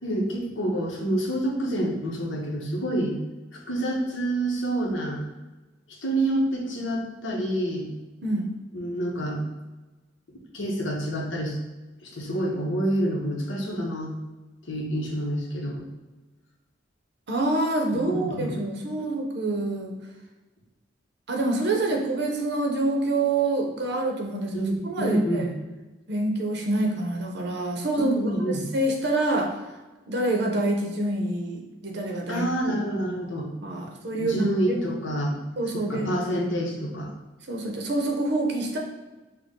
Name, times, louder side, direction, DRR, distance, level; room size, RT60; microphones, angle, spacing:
voice 1, 0.0-3.2 3.5-5.2 6.0-7.9 8.7-9.4 10.5-11.6 12.0-14.2 14.7-15.9 17.9-18.5 24.5-25.5 28.0-28.6 32.3-33.5 34.1-35.4 35.7-37.1, right 1 dB, 80° left, -1 dB, 1.0 m, -27 dB
voice 2, 8.2-8.5 17.3-20.0 21.3-25.5 26.1-28.1 28.5-29.6 30.1-32.5 32.7-33.2 33.6-34.8 35.6-36.1 37.5-38.8, right 2 dB, 60° right, 1 dB, 0.8 m, -27 dB
5.9 x 2.2 x 3.7 m, 1.1 s
head